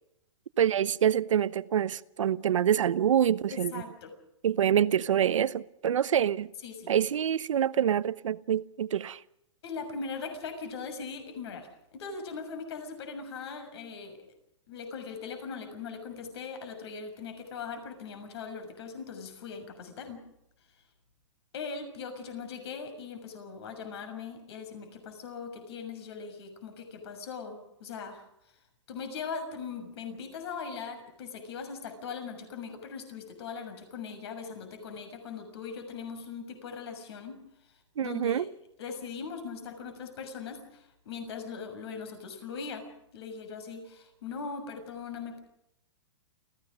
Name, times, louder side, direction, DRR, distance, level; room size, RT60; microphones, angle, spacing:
voice 1, 0.6-3.7 4.4-6.5 6.9-9.2 38.0-38.4, right 9 dB, 85° right, 1.0 m, -26 dB
voice 2, 3.5-4.1 6.6-6.9 9.6-14.2 14.7-20.2 21.5-28.2 28.9-37.4 38.0-38.5 38.8-42.8 43.1-45.4, left 5 dB, 55° left, 6.6 m, -40 dB
29.5 x 16.0 x 6.4 m
hypercardioid pair, 155°, 16 cm